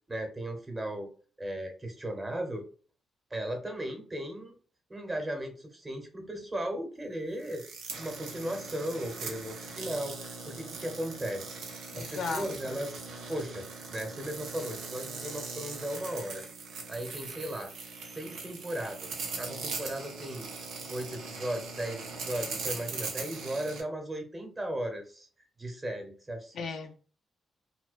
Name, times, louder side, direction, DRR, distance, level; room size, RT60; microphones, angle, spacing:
voice 1, 0.1-1.1 1.4-2.6 3.3-4.5 4.9-7.6 8.0-11.6 12.0-16.5 16.9-17.7 18.0-19.1 19.4-20.5 20.9-26.7, right 1 dB, 25° right, 0.9 m, -36 dB
sound 1, 7.4-23.8, right 4 dB, 80° right, 0.5 m, -40 dB
voice 2, 11.9-12.8 26.5-27.0, left 4 dB, 70° left, 0.4 m, -36 dB
2.4 x 2.1 x 2.4 m
supercardioid pair, 55°, 0 cm